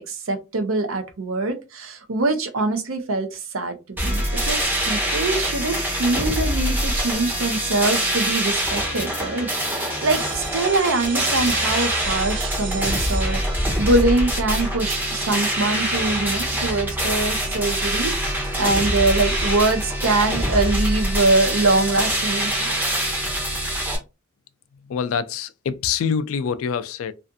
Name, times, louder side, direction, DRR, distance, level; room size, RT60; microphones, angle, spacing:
voice 1, 0.0-23.0, right 2 dB, 80° right, 0.6 m, -23 dB
sound 1, 4.0-24.0, equal, 10° right, 0.6 m, -24 dB
sound 2, 10.1-15.8, right 6 dB, 45° right, 0.7 m, -37 dB
voice 2, 24.9-27.1, left 7 dB, 80° left, 0.3 m, -25 dB
2.4 x 2.4 x 2.5 m
head